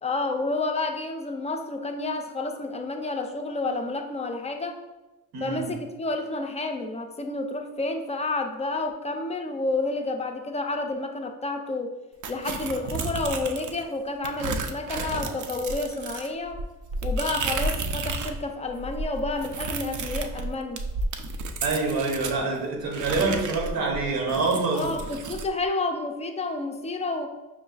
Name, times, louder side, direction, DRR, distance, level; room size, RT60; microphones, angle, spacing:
voice 1, 0.0-4.8 5.4-12.0 12.3-16.6 17.0-20.8 24.7-27.3, left 2 dB, 20° left, 6 dB, 0.3 m, -30 dB
voice 2, 5.3-5.7 21.6-24.9, right 3 dB, 85° right, 0 dB, 0.9 m, -26 dB
sound 1, 12.2-13.8 14.2-18.4 18.7-22.4 22.9-25.5, right 3 dB, 60° right, 0.5 m, -32 dB
5.8 x 2.3 x 2.3 m, 1.1 s
cardioid pair, 95°, 34 cm